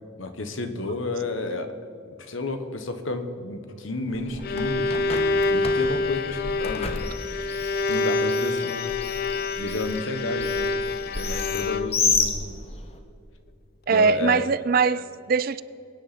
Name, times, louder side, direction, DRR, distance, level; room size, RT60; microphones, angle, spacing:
voice 1, 0.2-1.7 2.2-7.0 7.9-8.9 9.5-10.7 11.1-12.3 13.9-14.4, left 2 dB, 70° left, 1.3 m, -31 dB
Bird, 4.1-13.0, left 4 dB, 30° left, 1.2 m, -31 dB
Bowed string instrument, 4.2-12.2, left 3 dB, 45° left, 0.5 m, -27 dB
voice 2, 13.9-15.6, right 5 dB, 45° right, 0.4 m, -21 dB
22.5 x 9.9 x 4.3 m
head